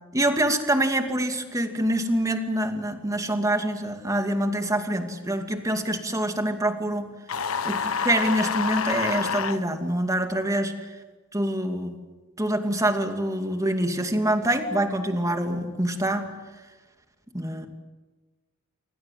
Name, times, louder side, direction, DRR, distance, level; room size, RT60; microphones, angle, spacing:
voice 1, 0.1-7.1 7.6-10.7 11.3-12.0 12.4-16.3 17.3-17.7, right 1 dB, 15° right, 5 dB, 2.5 m, -25 dB
sound 1, 7.3-9.6, left 6 dB, 85° left, 1.2 m, -27 dB
27.5 x 23.5 x 7.6 m, 1.3 s
head